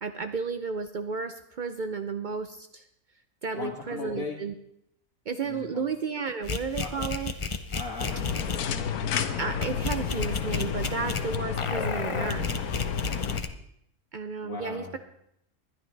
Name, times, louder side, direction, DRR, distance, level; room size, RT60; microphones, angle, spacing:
voice 1, 0.0-2.8 3.4-4.5 5.3-7.3 9.4-12.7 14.1-15.0, right 5 dB, 90° right, 8 dB, 0.4 m, -33 dB
voice 2, 3.5-4.4 5.4-5.8 6.8-7.2 7.7-8.7 14.4-15.0, left 4 dB, 65° left, -3 dB, 2.0 m, -39 dB
sound 1, 6.4-8.6 9.6-13.5, left 4 dB, 40° left, 0.4 m, -33 dB
sound 2, 8.0-13.4, left 7 dB, 80° left, 1.4 m, -31 dB
20.0 x 11.5 x 3.3 m, 0.75 s
omnidirectional pair, 1.6 m